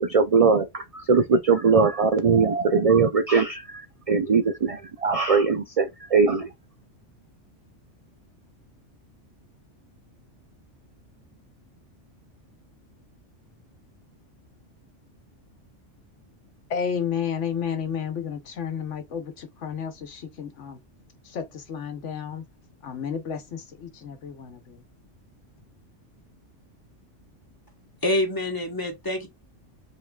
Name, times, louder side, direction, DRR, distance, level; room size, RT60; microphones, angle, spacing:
voice 1, 0.0-6.5, right 5 dB, 65° right, 0.3 m, -21 dB
voice 2, 16.7-20.8 21.2-22.4 22.8-24.8, left 7 dB, 75° left, 1.2 m, -32 dB
voice 3, 28.0-29.3, left 1 dB, 20° left, 1.3 m, -26 dB
5.5 x 3.7 x 2.3 m
omnidirectional pair, 1.3 m